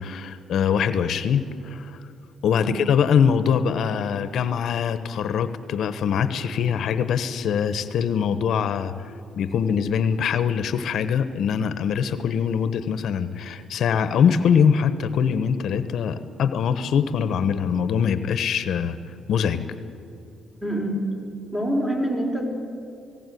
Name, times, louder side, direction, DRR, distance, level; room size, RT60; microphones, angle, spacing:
voice 1, 0.0-2.0 2.4-8.9 9.4-19.0 19.3-19.7, left 7 dB, 70° left, 12 dB, 1.0 m, -23 dB
voice 2, 20.6-21.1 21.5-22.5, equal, 15° right, 1 dB, 5.6 m, -25 dB
18.5 x 18.0 x 9.3 m, 2.5 s
cardioid pair, 90°, 0 cm